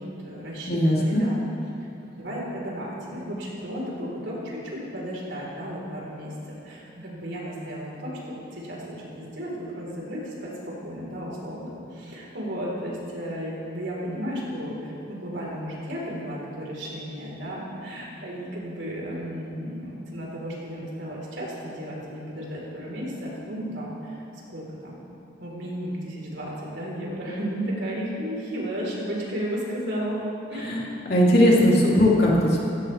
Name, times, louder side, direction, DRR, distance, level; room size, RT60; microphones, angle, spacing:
voice 1, 0.0-1.4 2.0-24.2 24.5-25.0 25.4-30.2 30.5-30.8, equal, 70° right, -4 dB, 4.0 m, -34 dB
voice 2, 0.7-1.2 30.6-30.8 31.1-32.6, left 1 dB, 55° left, -5 dB, 3.0 m, -19 dB
17.0 x 16.0 x 3.4 m, 2.7 s
head